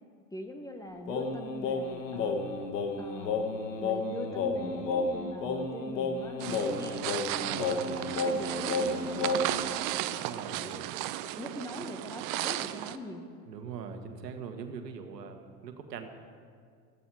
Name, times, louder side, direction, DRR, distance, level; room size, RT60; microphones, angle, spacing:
voice 1, 0.3-2.5 3.0-3.5 3.8-7.0 7.3-10.8 11.2-13.2, left 1 dB, 5° left, 5 dB, 1.4 m, -42 dB
Singing, 1.1-9.7, left 3 dB, 80° left, 1.7 m, -32 dB
sound 1, 6.4-13.0, right 15 dB, 45° right, 0.7 m, -35 dB
voice 2, 7.4-7.9 10.1-10.7 13.5-16.1, right 6 dB, 80° right, 6 dB, 1.7 m, -42 dB
17.0 x 14.5 x 4.9 m, 2.1 s
hypercardioid pair, 95°, 48 cm